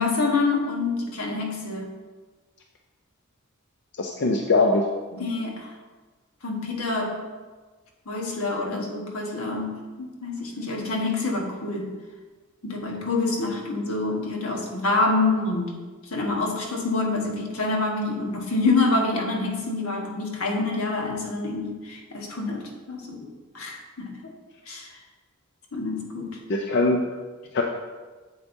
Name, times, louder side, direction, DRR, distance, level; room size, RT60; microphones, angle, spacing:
voice 1, 0.0-1.9 5.1-5.7 6.4-7.2 8.0-11.9 12.6-15.8 16.0-24.3 24.7-25.0 25.7-26.4, left 3 dB, 80° left, 0 dB, 1.3 m, -27 dB
voice 2, 4.0-4.9 26.5-27.2 27.5-27.6, left 2 dB, 55° left, 2 dB, 0.5 m, -21 dB
8.1 x 7.6 x 2.7 m, 1.3 s
head